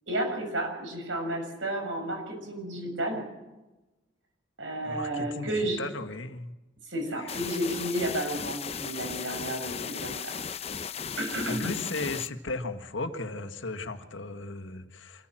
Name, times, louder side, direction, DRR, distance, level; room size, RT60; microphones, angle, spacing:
voice 1, 0.1-3.2 4.6-5.8 6.9-10.3 11.2-11.7, right 1 dB, 80° right, 3 dB, 6.8 m, -32 dB
voice 2, 4.8-6.5 7.2-7.4 11.5-15.3, left 3 dB, 80° left, 6 dB, 1.8 m, -36 dB
sound 1, 7.3-12.3, left 7 dB, 30° left, 0.7 m, -36 dB
25.5 x 14.5 x 7.6 m, 1.0 s
head